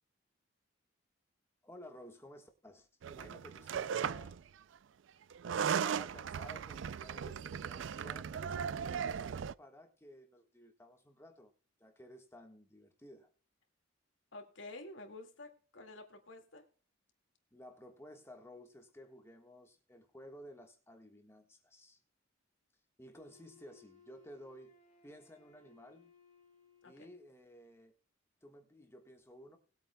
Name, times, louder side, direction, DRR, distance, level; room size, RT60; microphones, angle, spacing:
voice 1, 1.6-4.4 5.7-11.5 11.8-13.3 17.5-22.0 23.0-24.7 25.0-26.1 26.8-27.9 28.4-29.6, equal, 15° left, 4 dB, 1.4 m, -55 dB
sound 1, 3.0-4.4 5.3-9.5, right 7 dB, 70° right, 0.4 m, -37 dB
voice 2, 14.3-16.7 26.8-27.1, left 2 dB, 70° left, 5 dB, 2.0 m, -50 dB
Wind instrument woodwind instrument, 23.1-27.3, left 5 dB, 35° left, 2.6 m, -64 dB
20.0 x 8.7 x 2.2 m, 0.41 s
head